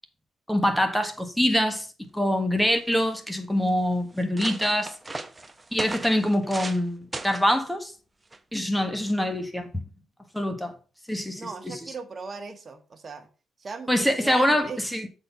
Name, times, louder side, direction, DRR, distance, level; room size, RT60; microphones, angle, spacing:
voice 1, 0.5-4.9 5.7-7.9 8.5-9.8 10.3-10.7 11.1-11.5 13.9-15.1, equal, 5° left, 1.5 m, -24 dB
sound 1, 2.3-2.4 2.6-3.2 3.8-3.9 4.1-6.8 7.1-7.5 8.3-8.6, right 2 dB, 15° right, 0.9 m, -37 dB
voice 2, 11.4-13.3 13.6-14.8, right 4 dB, 35° right, 1.5 m, -38 dB
7.8 x 4.4 x 5.6 m
cardioid pair, 90°, 0 cm